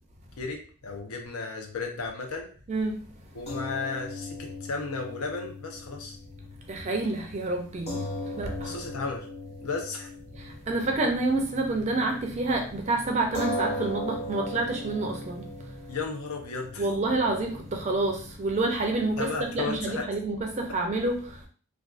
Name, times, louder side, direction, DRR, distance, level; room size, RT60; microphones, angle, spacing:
voice 1, 0.4-2.5 3.3-6.2 8.6-9.3 9.6-10.1 15.9-16.9 19.2-20.0, left 4 dB, 75° left, 0.6 m, -34 dB
voice 2, 2.7-3.1 6.7-8.0 8.4-8.7 10.7-15.4 16.8-21.3, right 2 dB, 30° right, 0.4 m, -28 dB
sound 1, 3.5-12.0 12.3-12.5 13.3-19.9, left 1 dB, 30° left, 0.6 m, -39 dB
2.5 x 2.3 x 2.4 m
head